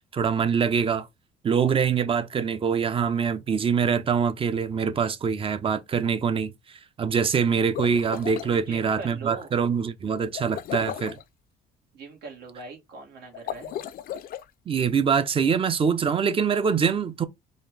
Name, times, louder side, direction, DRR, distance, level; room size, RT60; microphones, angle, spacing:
voice 1, 0.1-1.1 1.4-11.2 14.7-17.2, right 6 dB, 30° right, 0.6 m, -24 dB
sound 1, 7.6-8.5 10.3-11.2 13.3-14.4, left 10 dB, 60° left, 0.4 m, -35 dB
voice 2, 8.5-9.5 11.9-13.8, right 4 dB, 80° right, 1.9 m, -41 dB
4.2 x 2.5 x 3.3 m
cardioid pair, 110°, 17 cm